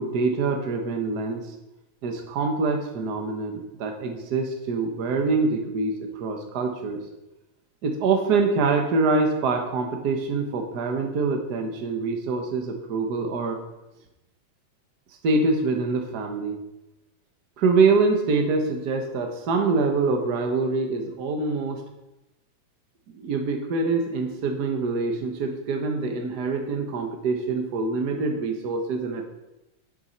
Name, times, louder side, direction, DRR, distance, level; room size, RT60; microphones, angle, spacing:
voice 1, 0.0-1.5 2.0-7.0 7.8-13.6 15.2-16.6 17.6-21.8 23.1-29.2, right 4 dB, 50° right, 4 dB, 1.2 m, -25 dB
7.9 x 7.0 x 5.7 m, 0.94 s
omnidirectional pair, 3.3 m